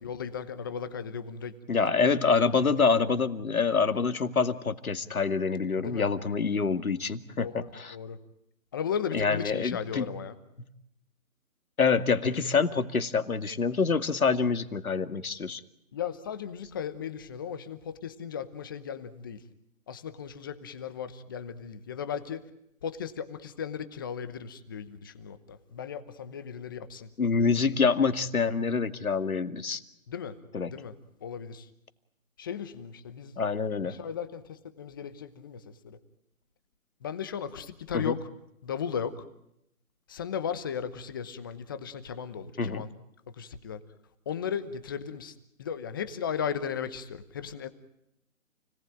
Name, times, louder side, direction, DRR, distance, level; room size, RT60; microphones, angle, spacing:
voice 1, 0.0-1.8 5.8-6.1 7.4-7.6 7.9-8.2 8.7-10.3 12.3-12.7 15.9-19.4 19.9-22.4 22.8-27.1 27.3-27.5 30.1-30.3 30.7-30.9 31.2-31.7 32.4-33.3 33.8-36.0 37.0-38.2 38.6-39.1 40.1-42.9 43.4-43.8 44.3-45.3 45.6-47.7, left 7 dB, 15° left, 12 dB, 0.9 m, -36 dB
voice 2, 1.7-8.0 9.1-10.1 11.8-15.6 27.2-29.8 30.5-30.7 33.4-34.0 37.9-38.2 42.6-42.9, left 5 dB, 80° left, 9 dB, 2.3 m, -26 dB
29.5 x 19.0 x 9.1 m, 0.81 s
hypercardioid pair, 160°, 42 cm